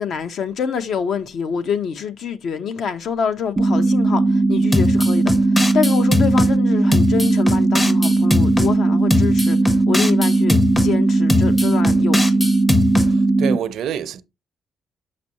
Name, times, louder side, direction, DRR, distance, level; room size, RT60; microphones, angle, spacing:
voice 1, 0.0-12.5, left 6 dB, 65° left, 0.8 m, -26 dB
sound 1, 3.6-13.6, right 2 dB, 20° right, 0.3 m, -17 dB
sound 2, 4.7-6.5 6.9-8.7 9.1-10.9 11.3-13.1, left 3 dB, 20° left, 0.7 m, -21 dB
voice 2, 13.0-14.2, right 9 dB, 75° right, 0.6 m, -27 dB
6.2 x 6.0 x 2.8 m
cardioid pair, 90°, 0 cm